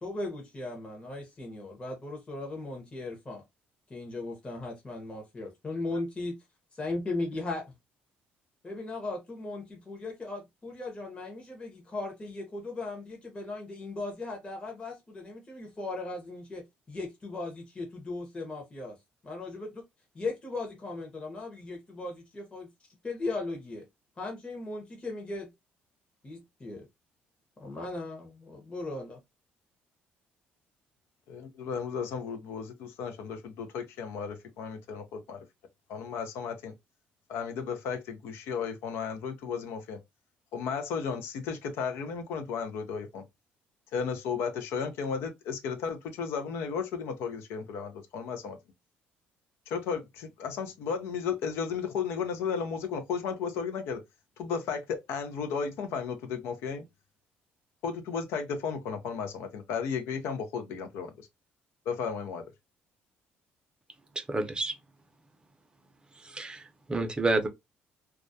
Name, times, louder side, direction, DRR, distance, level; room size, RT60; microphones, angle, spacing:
voice 1, 0.0-3.4 3.9-6.3 6.7-7.7 8.6-19.0 19.2-19.8 20.1-22.7 23.0-23.8 24.2-25.5 26.2-26.8 27.6-29.2, left 2 dB, 25° left, 0.8 m, -37 dB
voice 2, 31.3-35.4 35.9-36.7 37.3-40.0 40.5-43.2 43.9-48.6 49.7-54.0 54.4-56.9 57.8-61.3 61.9-62.4, left 6 dB, 80° left, 0.5 m, -34 dB
voice 3, 64.3-64.7 66.2-66.6 66.9-67.5, right 2 dB, 20° right, 0.5 m, -28 dB
2.3 x 2.1 x 2.5 m
cardioid pair, 95°, 4 cm